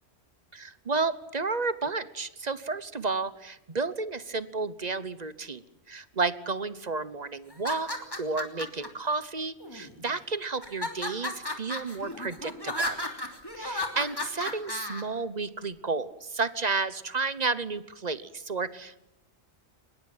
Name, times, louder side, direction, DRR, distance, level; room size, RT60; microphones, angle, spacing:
voice 1, 0.5-7.9 8.2-13.0 13.6-19.0, right 4 dB, 40° right, 15 dB, 1.1 m, -32 dB
sound 1, 7.5-8.9 9.6-10.1 10.6-15.0, left 1 dB, 20° left, 3.2 m, -34 dB
23.5 x 21.0 x 9.0 m, 0.84 s
omnidirectional pair, 1.1 m